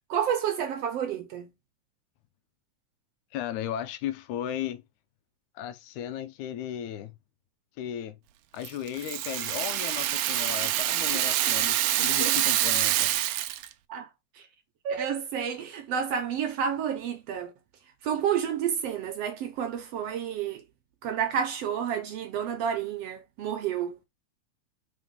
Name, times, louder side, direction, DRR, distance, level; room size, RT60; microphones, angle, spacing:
voice 1, 0.1-1.5 12.2-12.4 13.9-14.1 14.4-14.5 14.9-17.5 18.0-20.6 21.0-24.0, right 8 dB, 65° right, 1.7 m, -30 dB
voice 2, 3.3-4.8 5.6-7.1 7.8-8.2 8.5-13.3, left 10 dB, 80° left, 2.1 m, -35 dB
Rattle (instrument), 8.6-13.7, right 13 dB, 85° right, 1.4 m, -26 dB
5.0 x 3.9 x 5.3 m
omnidirectional pair, 3.4 m